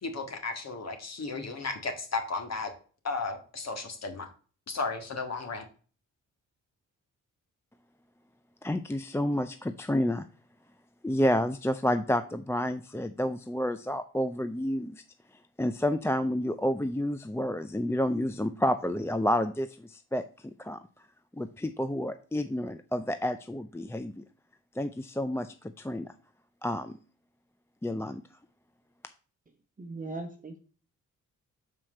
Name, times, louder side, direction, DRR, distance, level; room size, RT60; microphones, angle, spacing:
voice 1, 0.0-2.7 3.0-4.3 4.7-5.7, left 4 dB, 50° left, 5 dB, 1.9 m, -34 dB
voice 2, 8.6-10.3 11.0-14.9 15.6-20.2 20.6-20.8 21.3-24.2 24.8-26.1 26.6-27.0 27.8-28.2, left 1 dB, 10° left, 10 dB, 0.5 m, -29 dB
voice 3, 29.8-30.6, right 2 dB, 25° right, 5 dB, 1.0 m, -38 dB
5.8 x 4.5 x 6.3 m, 0.39 s
cardioid pair, 65°, 33 cm